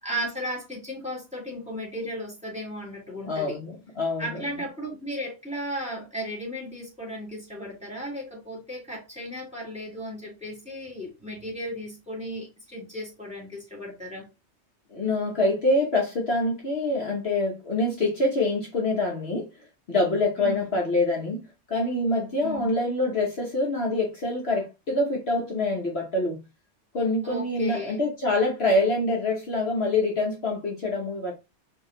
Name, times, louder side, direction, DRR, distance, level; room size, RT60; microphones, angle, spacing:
voice 1, 0.0-3.6 4.2-14.3 20.4-20.7 22.4-22.7 27.2-28.0, equal, 5° right, 2.5 m, -35 dB
voice 2, 3.2-4.5 14.9-19.5 19.9-26.4 26.9-31.3, left 2 dB, 55° left, 1.3 m, -25 dB
4.7 x 2.9 x 3.8 m
omnidirectional pair, 1.3 m